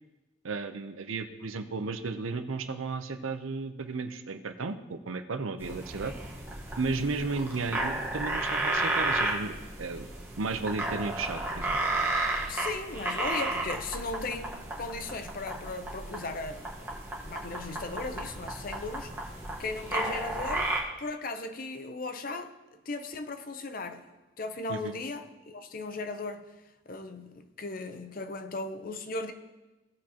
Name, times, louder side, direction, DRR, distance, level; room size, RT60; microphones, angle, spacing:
voice 1, 0.4-6.1 6.8-10.1 10.4-11.8 24.7-24.9, right 3 dB, 85° right, 0.7 m, -34 dB
sound 1, 5.6-20.8, right 2 dB, 10° right, 1.2 m, -33 dB
voice 2, 12.5-16.9 17.2-19.1 19.6-22.5 22.9-24.1 24.4-26.4 26.9-29.3, left 3 dB, 45° left, 0.6 m, -37 dB
17.5 x 6.2 x 2.9 m
head